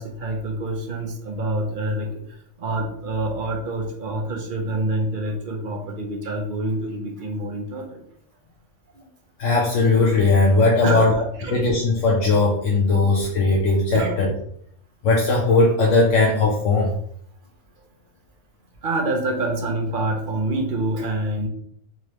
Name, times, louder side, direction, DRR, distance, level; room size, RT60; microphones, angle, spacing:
voice 1, 0.0-8.0 8.9-9.1 10.8-11.1 11.4-11.9 12.9-13.0 13.9-14.1 18.8-21.5, right 2 dB, 50° right, 2 dB, 0.7 m, -27 dB
voice 2, 9.4-11.1 11.5-14.3 15.0-16.9, left 3 dB, 65° left, -2 dB, 1.0 m, -18 dB
3.7 x 3.2 x 2.9 m, 0.67 s
omnidirectional pair, 1.5 m